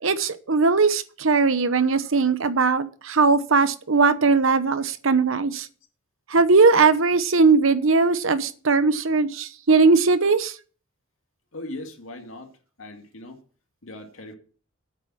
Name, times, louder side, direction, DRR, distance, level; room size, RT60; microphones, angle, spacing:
voice 1, 0.0-5.7 6.3-10.5, right 4 dB, 80° right, 1.0 m, -19 dB
voice 2, 11.5-12.5 12.8-13.4 13.8-14.3, left 1 dB, 80° left, 2.1 m, -38 dB
8.9 x 8.4 x 6.3 m
head